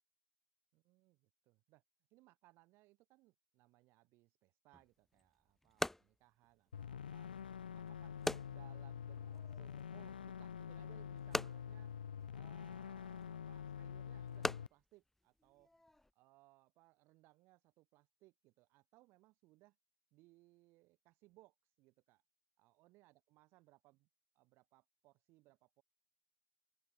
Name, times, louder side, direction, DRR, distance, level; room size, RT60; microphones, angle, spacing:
voice 1, 0.7-1.8 2.1-7.4 7.7-8.2 8.5-11.9 12.3-15.7 16.2-19.8 20.1-22.2 22.6-24.1 24.3-25.8, right 20 dB, 55° right, 4.1 m, -67 dB
sound 1, 4.7-16.1, left 1 dB, 5° left, 0.5 m, -46 dB
sound 2, 6.7-14.7, left 8 dB, 85° left, 0.4 m, -47 dB
open air
hypercardioid pair, 75°, 5 cm